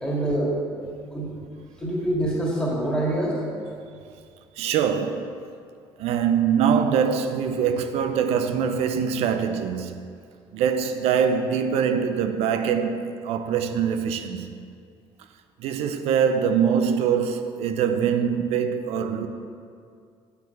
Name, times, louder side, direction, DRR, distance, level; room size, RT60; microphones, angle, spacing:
voice 1, 0.0-0.6 1.1-1.4 1.8-3.4, right 1 dB, 10° left, 1.8 m, -25 dB
voice 2, 4.6-5.4 6.0-10.2 10.5-14.7 15.6-19.3, right 7 dB, 80° right, 0.5 m, -23 dB
7.9 x 4.7 x 4.7 m
cardioid pair, 110°, 10 cm